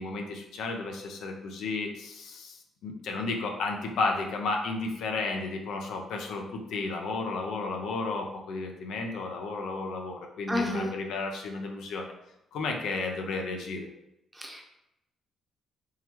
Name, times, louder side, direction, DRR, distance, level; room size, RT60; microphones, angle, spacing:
voice 1, 0.0-12.1 12.5-13.9, left 3 dB, 80° left, 2 dB, 0.6 m, -33 dB
voice 2, 10.5-11.0 14.3-14.6, left 1 dB, 15° right, 1 dB, 0.7 m, -30 dB
3.7 x 3.1 x 3.0 m, 0.86 s
cardioid pair, 90°, 0 cm